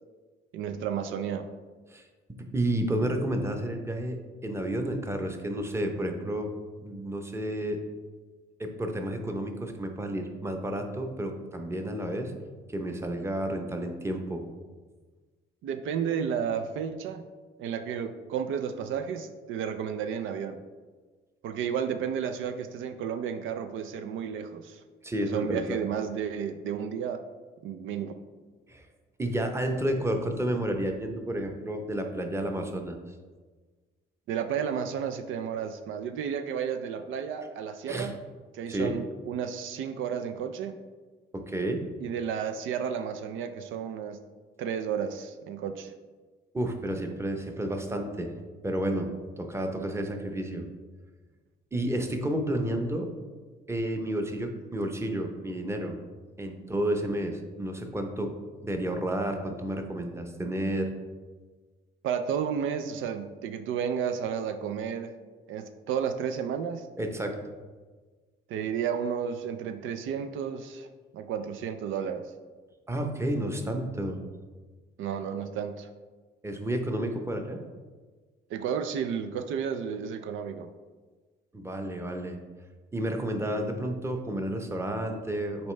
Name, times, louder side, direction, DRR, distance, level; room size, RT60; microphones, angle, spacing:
voice 1, 0.5-1.5 13.5-13.6 15.6-17.2 17.6-20.6 21.4-24.8 25.3-27.2 27.6-28.2 34.3-38.2 38.5-40.7 42.0-44.2 44.6-45.9 62.0-65.1 65.5-66.9 68.5-70.9 71.1-72.3 75.0-75.9 78.5-80.7, right 7 dB, 80° right, 8 dB, 0.4 m, -32 dB
voice 2, 1.9-4.2 4.4-6.5 6.8-7.8 8.6-12.3 12.7-14.4 25.0-25.8 28.7-28.9 29.2-33.0 37.9-38.1 38.7-39.0 41.3-41.8 46.5-48.3 48.6-50.7 51.7-53.1 53.7-55.9 56.4-58.3 58.6-60.9 67.0-67.4 72.9-74.2 76.4-77.6 81.5-82.4 82.9-85.7, right 1 dB, 15° right, 4 dB, 0.8 m, -31 dB
7.1 x 4.3 x 3.3 m, 1.4 s
cardioid pair, 90°, 20 cm